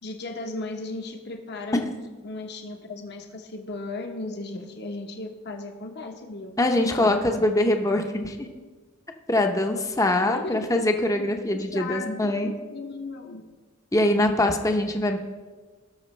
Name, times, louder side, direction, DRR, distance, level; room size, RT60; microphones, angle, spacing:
voice 1, 0.0-1.9 2.2-7.2 10.3-10.6 11.2-13.4, left 2 dB, 50° left, 4 dB, 0.9 m, -36 dB
voice 2, 6.6-8.5 9.3-12.5 13.9-15.2, left 1 dB, 15° left, 5 dB, 0.7 m, -23 dB
18.0 x 6.3 x 3.2 m, 1.4 s
head